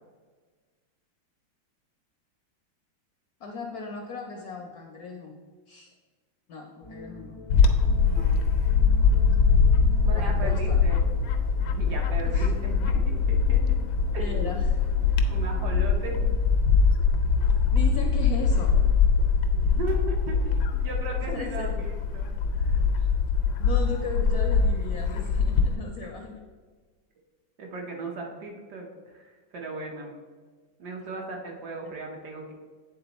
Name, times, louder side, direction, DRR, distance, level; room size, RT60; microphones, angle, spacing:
voice 1, 3.4-5.4 5.7-5.9 6.5-7.4 10.1-11.0 12.3-12.5 14.2-14.8 17.7-18.7 21.3-21.7 23.6-26.4, left 4 dB, 70° left, 2 dB, 0.9 m, -37 dB
sound 1, 6.8-16.3, left 2 dB, 50° left, 0.3 m, -44 dB
Bird / Wind, 7.5-25.8, left 5 dB, 85° left, 1.4 m, -23 dB
voice 2, 8.0-8.4 10.0-11.0 11.7-13.6 14.1-14.5 15.3-16.4 19.5-22.8 27.6-29.2 29.5-30.1 30.8-32.5, right 3 dB, 60° right, 1 dB, 1.4 m, -37 dB
8.7 x 3.6 x 4.0 m, 1.4 s
omnidirectional pair, 2.1 m